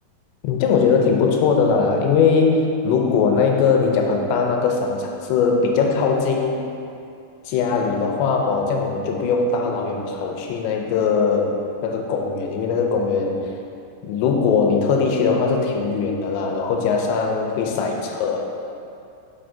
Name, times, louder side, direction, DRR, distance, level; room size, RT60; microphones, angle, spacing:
voice 1, 0.4-6.6 7.5-11.5 11.8-13.5 14.0-18.5, left 5 dB, 85° left, 2 dB, 2.8 m, -20 dB
7.7 x 6.3 x 2.7 m, 2.5 s
omnidirectional pair, 5.0 m